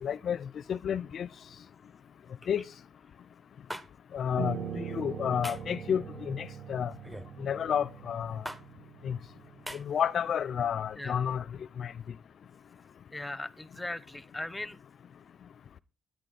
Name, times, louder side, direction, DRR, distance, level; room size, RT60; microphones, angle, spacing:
voice 1, 0.0-0.4 0.7-1.3 2.5-2.6 4.1-6.9 7.4-8.4 9.0-9.2 9.7-11.4 11.8-11.9, left 8 dB, 60° left, 0.5 m, -31 dB
sound 1, 3.7-3.9 5.4-5.7 7.0-7.3 8.5-8.6 9.7-9.8, equal, 10° right, 1.5 m, -39 dB
Piano, 4.4-9.7, right 8 dB, 60° right, 1.4 m, -41 dB
voice 2, 13.1-14.8, left 2 dB, 10° left, 1.0 m, -38 dB
13.5 x 9.4 x 4.1 m
cardioid pair, 90°, 0 cm